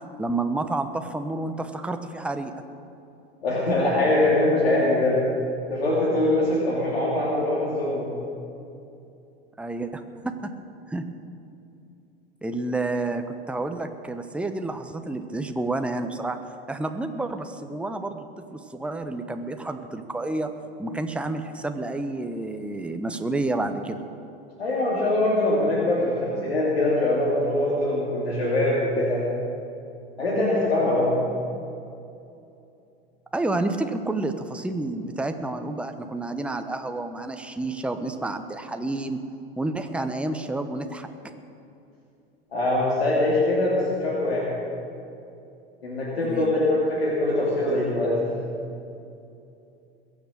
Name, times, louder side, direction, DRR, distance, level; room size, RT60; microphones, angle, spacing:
voice 1, 0.2-2.5 9.6-10.3 10.9-11.0 12.4-16.4 16.7-18.2 18.5-20.5 20.8-24.0 33.3-39.2 39.6-41.1 46.2-46.5, right 2 dB, 5° right, 6 dB, 1.0 m, -29 dB
voice 2, 3.4-5.2 5.7-8.1 24.6-29.2 30.2-31.1 42.5-44.5 45.8-48.4, left 1 dB, 85° left, -6 dB, 2.8 m, -23 dB
21.5 x 7.4 x 6.5 m, 2.6 s
hypercardioid pair, 85°, 30 cm